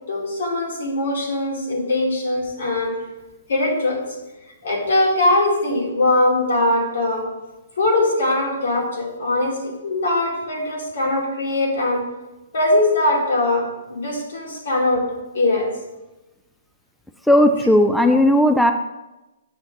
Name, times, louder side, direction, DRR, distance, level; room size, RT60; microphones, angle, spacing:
voice 1, 0.1-2.9 3.5-4.0 4.6-7.3 7.8-12.1 12.5-15.0 15.3-15.7, left 2 dB, 75° left, -2 dB, 2.5 m, -21 dB
voice 2, 17.3-18.7, left 1 dB, ahead, 7 dB, 0.3 m, -15 dB
7.2 x 6.3 x 3.8 m, 1.0 s
hypercardioid pair, 145°, 0 cm